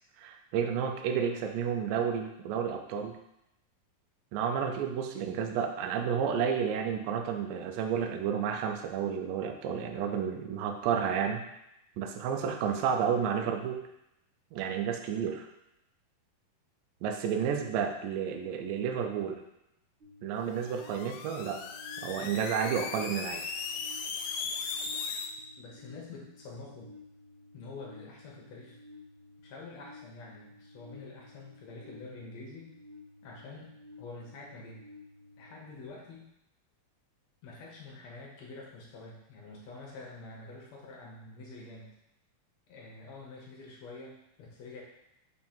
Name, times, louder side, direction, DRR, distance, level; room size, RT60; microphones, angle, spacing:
voice 1, 0.2-3.2 4.3-11.4 12.0-13.8 14.5-15.5 17.0-19.4 20.2-21.6 22.0-23.4, right 7 dB, 80° right, 4 dB, 2.2 m, -31 dB
sound 1, 20.0-35.9, left 2 dB, 60° right, 1.3 m, -54 dB
sound 2, 20.5-25.3, left 5 dB, 80° left, 2.2 m, -37 dB
voice 2, 25.6-26.9 27.5-28.8 29.4-32.7 33.2-33.7 34.0-34.8 35.4-36.3 37.4-41.9 42.7-44.8, left 3 dB, 65° left, -2 dB, 1.8 m, -47 dB
5.7 x 3.7 x 4.4 m, 0.83 s
omnidirectional pair, 4.1 m